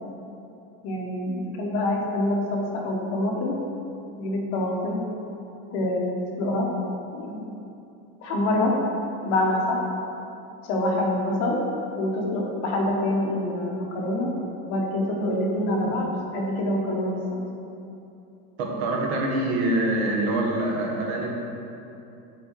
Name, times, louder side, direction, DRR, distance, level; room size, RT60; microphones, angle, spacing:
voice 1, 0.8-3.6 4.2-5.0 5.7-6.7 7.1-7.4 8.2-8.7 9.2-9.8 10.6-11.6 12.0-14.3 14.7-17.1, left 1 dB, 45° left, -1 dB, 1.0 m, -26 dB
voice 2, 18.6-21.4, right 1 dB, 75° right, 0 dB, 1.2 m, -25 dB
6.2 x 4.8 x 4.5 m, 2.8 s
cardioid pair, 175°, 33 cm